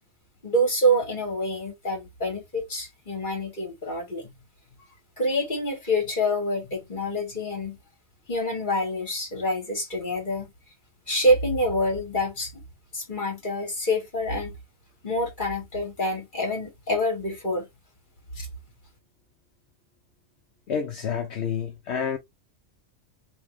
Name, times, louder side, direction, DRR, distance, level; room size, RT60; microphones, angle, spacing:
voice 1, 0.4-4.3 5.2-7.8 8.3-10.5 11.1-12.5 12.9-14.6 15.0-17.7 18.4-18.5, equal, 40° left, 2.1 m, -26 dB
voice 2, 20.7-22.2, left 7 dB, 65° left, 1.0 m, -29 dB
3.3 x 3.2 x 3.4 m
omnidirectional pair, 1.3 m